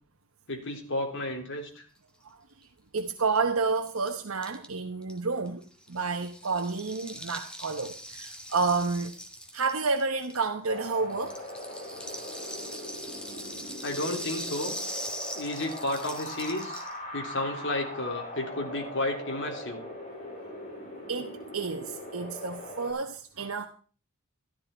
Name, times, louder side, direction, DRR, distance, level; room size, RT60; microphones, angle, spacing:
voice 1, 0.5-1.8 13.8-14.8 15.3-16.8 17.1-19.8, left 2 dB, 60° left, 3.4 m, -32 dB
voice 2, 2.9-9.1 9.5-11.4 21.1-23.7, right 4 dB, 75° right, 1.1 m, -30 dB
Rattle (instrument), 3.1-3.2 3.3-3.4 3.6-10.8 11.1-17.0, equal, 5° left, 1.9 m, -41 dB
Wind, 10.7-22.9, left 1 dB, 35° left, 6.2 m, -41 dB
13.5 x 13.0 x 4.4 m
head